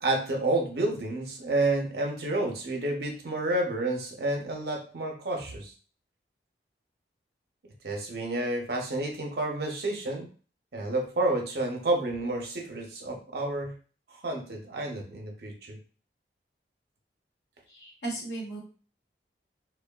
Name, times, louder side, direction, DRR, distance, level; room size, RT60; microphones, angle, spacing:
voice 1, 0.0-5.7 7.8-10.3 10.7-13.7 14.2-15.8, right 2 dB, 60° right, 1 dB, 0.7 m, -30 dB
voice 2, 17.8-18.6, right 2 dB, 75° left, -2 dB, 1.0 m, -35 dB
3.0 x 2.1 x 2.3 m, 0.38 s
head